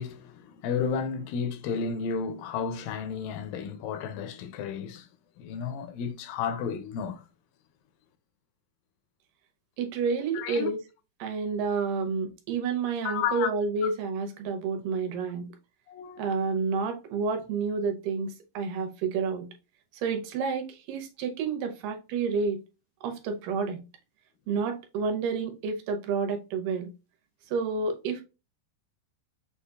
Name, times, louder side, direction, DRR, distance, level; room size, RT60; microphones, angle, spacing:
voice 1, 0.0-5.1 5.4-7.2 10.3-10.7 13.1-13.5 15.9-16.3, left 6 dB, 85° left, 2.2 m, -32 dB
voice 2, 9.8-10.8 11.2-15.5 16.2-19.5 19.9-22.6 23.0-23.8 24.5-26.9 27.5-28.2, right 5 dB, 75° right, 2.3 m, -29 dB
6.6 x 2.8 x 2.3 m
omnidirectional pair, 4.0 m